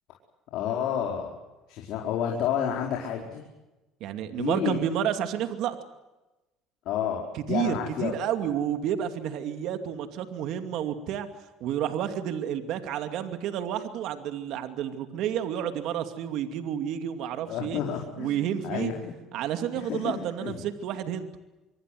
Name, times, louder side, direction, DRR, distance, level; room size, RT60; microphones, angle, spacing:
voice 1, 0.5-1.3 1.7-3.4 4.3-4.8 6.8-8.1 17.5-19.1 19.7-20.6, left 9 dB, 70° left, 0 dB, 4.8 m, -30 dB
voice 2, 4.0-5.8 7.3-11.3 11.6-17.8 18.2-18.9 19.3-21.3, right 10 dB, 70° right, 7 dB, 2.5 m, -30 dB
26.0 x 24.5 x 7.8 m, 1.1 s
supercardioid pair, 90°, 0 cm